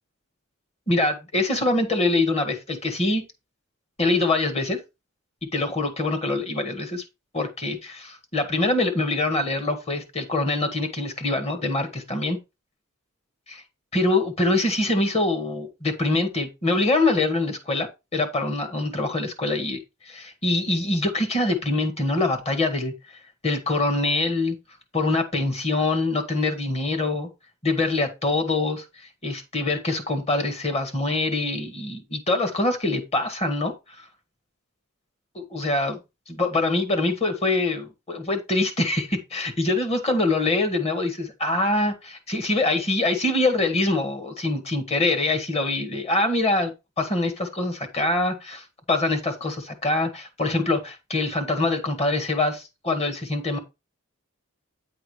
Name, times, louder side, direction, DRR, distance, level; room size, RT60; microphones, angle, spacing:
voice 1, 0.9-3.2 4.0-4.8 5.5-7.0 7.3-12.4 13.5-13.6 13.9-17.9 18.1-22.9 23.4-24.5 24.9-27.3 27.6-34.0 35.3-36.0 36.3-53.6, left 2 dB, 30° left, 1.6 m, -24 dB
9.3 x 3.7 x 4.8 m
head